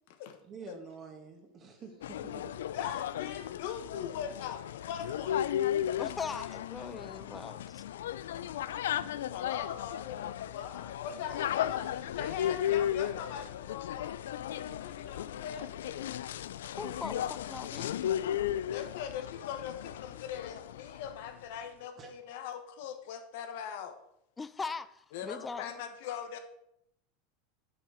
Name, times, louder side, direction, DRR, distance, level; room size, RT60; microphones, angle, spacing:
voice 1, 0.4-2.6 9.0-9.2 22.0-22.1, right 5 dB, 35° right, 2 dB, 1.8 m, -48 dB
sound 1, 2.0-21.3, left 11 dB, 85° left, 0.3 m, -35 dB
voice 2, 2.7-5.5 9.3-14.2 14.6-16.2 18.7-24.0 25.1-26.4, left 8 dB, 70° left, 7 dB, 1.2 m, -41 dB
voice 3, 6.0-7.8 16.8-18.0 24.4-25.7, left 4 dB, 15° left, 15 dB, 0.5 m, -40 dB
8.7 x 6.2 x 4.8 m, 0.74 s
supercardioid pair, 115°, 0 cm